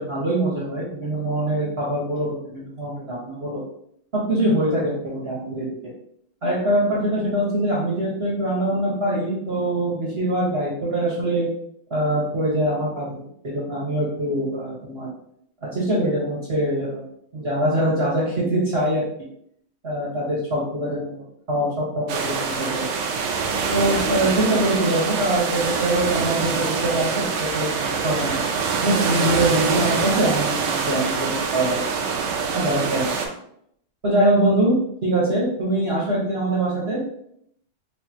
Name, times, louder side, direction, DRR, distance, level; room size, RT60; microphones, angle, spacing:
voice 1, 0.0-3.6 4.1-5.7 6.4-11.5 11.9-15.1 15.6-17.1 17.3-19.1 19.8-22.9 23.7-27.2 27.5-28.4 28.8-31.8 32.5-33.2 34.0-34.7 35.0-37.1, right 1 dB, 40° right, -6 dB, 1.0 m, -23 dB
sound 1, 22.1-33.3, right 5 dB, 85° right, 1.5 m, -25 dB
4.9 x 2.7 x 2.8 m, 0.71 s
omnidirectional pair, 2.3 m